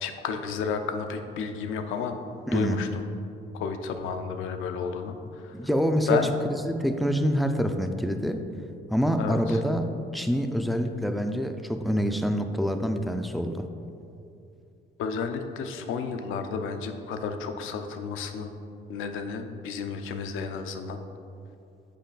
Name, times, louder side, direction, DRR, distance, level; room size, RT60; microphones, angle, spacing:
voice 1, 0.0-2.2 2.5-2.9 3.5-5.2 5.4-5.5 6.1-6.3 9.2-9.6 15.0-18.5 18.9-21.0, left 5 dB, 90° left, 7 dB, 0.5 m, -31 dB
voice 2, 2.5-2.8 5.5-6.2 6.4-8.4 8.9-13.7, equal, ahead, 6 dB, 0.4 m, -26 dB
6.5 x 5.2 x 3.9 m, 2.6 s
cardioid pair, 90°, 20 cm